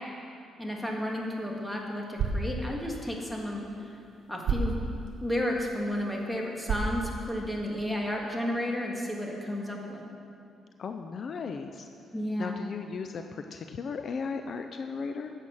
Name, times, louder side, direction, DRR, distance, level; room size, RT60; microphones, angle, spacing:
voice 1, 0.6-3.7 4.3-4.8 5.2-10.0 12.1-12.6, left 1 dB, 5° left, -1 dB, 1.8 m, -32 dB
sound 1, 0.9-7.8, right 4 dB, 70° right, 1.1 m, -36 dB
voice 2, 10.8-11.9 12.4-15.3, left 5 dB, 55° left, 6 dB, 0.5 m, -36 dB
10.5 x 7.8 x 5.7 m, 2.6 s
cardioid pair, 90°, 0 cm